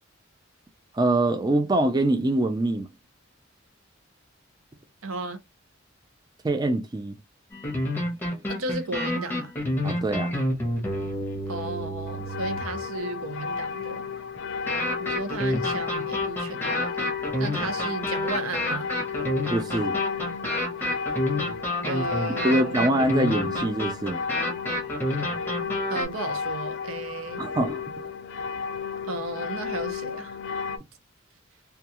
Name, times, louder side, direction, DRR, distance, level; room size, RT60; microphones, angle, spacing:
voice 1, 0.9-2.9 6.4-7.2 9.8-10.3 19.5-20.0 22.4-24.2 27.4-27.8, right 1 dB, 20° right, 0.3 m, -24 dB
voice 2, 5.0-5.4 8.5-9.5 11.5-14.1 15.0-17.0 17.4-18.9 21.9-22.8 25.9-27.5 29.1-30.4, right 2 dB, 85° right, 0.6 m, -34 dB
sound 1, 7.5-12.8 14.7-26.1, left 1 dB, 10° left, 0.7 m, -29 dB
sound 2, 12.1-30.8, left 6 dB, 60° left, 0.3 m, -33 dB
2.3 x 2.3 x 2.8 m
head